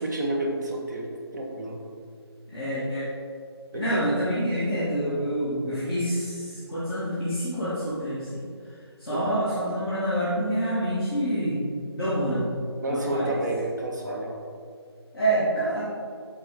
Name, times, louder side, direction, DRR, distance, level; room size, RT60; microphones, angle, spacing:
voice 1, 0.0-1.8 3.7-4.0 9.1-9.2 12.8-14.4, right 1 dB, 40° right, 0 dB, 1.0 m, -30 dB
voice 2, 2.5-3.0 3.7-8.4 9.0-12.5 12.9-13.4 15.1-15.8, right 1 dB, ahead, -21 dB, 0.4 m, -27 dB
8.8 x 3.7 x 3.4 m, 2.3 s
figure-of-eight pair, 165°, 14 cm